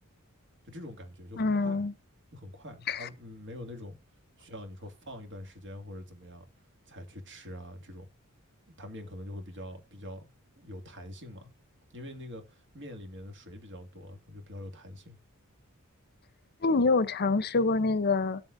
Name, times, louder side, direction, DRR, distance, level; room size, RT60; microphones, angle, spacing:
voice 1, 0.6-1.8 2.3-4.0 4.4-6.5 6.9-8.1 8.8-10.3 10.6-11.5 11.9-15.2, left 1 dB, 55° right, 2.3 m, -44 dB
voice 2, 1.4-1.9 2.9-3.1 16.6-18.4, left 3 dB, 45° left, 0.7 m, -26 dB
18.0 x 7.3 x 2.6 m
head